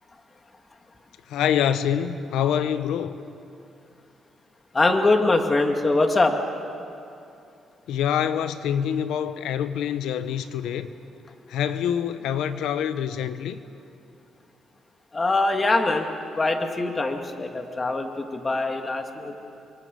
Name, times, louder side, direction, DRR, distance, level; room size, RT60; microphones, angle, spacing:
voice 1, 1.3-3.2 7.9-10.9 11.5-13.6, left 9 dB, 85° left, 12 dB, 1.0 m, -25 dB
voice 2, 4.7-6.3 15.1-16.1 16.4-19.3, left 2 dB, 25° left, 4 dB, 2.2 m, -23 dB
29.0 x 23.5 x 5.4 m, 2.6 s
cardioid pair, 90°, 0 cm